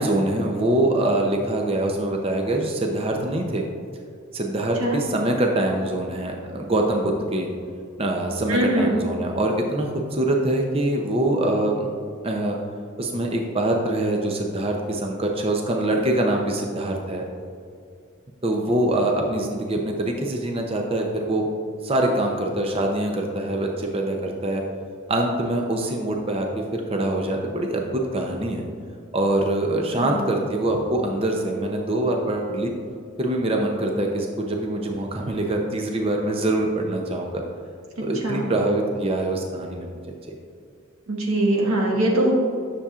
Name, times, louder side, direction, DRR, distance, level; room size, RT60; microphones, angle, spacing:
voice 1, 0.0-3.7 4.3-7.5 8.0-11.9 12.2-12.6 13.0-17.2 18.4-21.5 21.8-24.6 25.1-28.6 29.1-32.7 33.2-37.4 38.0-39.9 40.3-40.4, right 1 dB, 25° right, 1 dB, 0.6 m, -24 dB
voice 2, 8.5-8.9 30.0-30.2 38.0-38.5 41.1-42.3, right 1 dB, 90° right, -1 dB, 1.5 m, -22 dB
9.9 x 6.8 x 2.4 m, 2.3 s
head